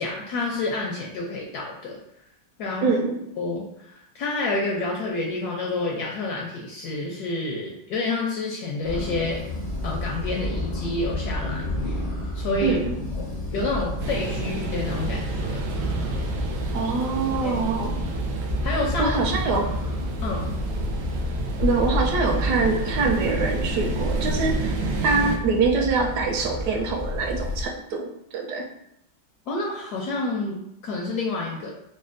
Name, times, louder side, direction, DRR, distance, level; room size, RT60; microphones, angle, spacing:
voice 1, 0.0-2.0 2.6-2.9 3.4-9.4 9.8-12.0 12.3-12.8 13.2-15.6 17.4-17.5 18.6-19.2 20.2-20.5 29.5-31.7, left 2 dB, 75° left, -2 dB, 0.9 m, -29 dB
voice 2, 2.8-3.2 12.6-13.0 16.7-18.1 19.0-19.8 21.6-24.7 25.0-28.7, right 4 dB, 75° right, 2 dB, 1.0 m, -24 dB
sound 1, 8.8-27.7, left 2 dB, 45° left, 0.5 m, -30 dB
sound 2, 14.0-25.4, right 3 dB, 90° right, 1.3 m, -30 dB
5.2 x 2.1 x 2.5 m, 0.77 s
omnidirectional pair, 2.1 m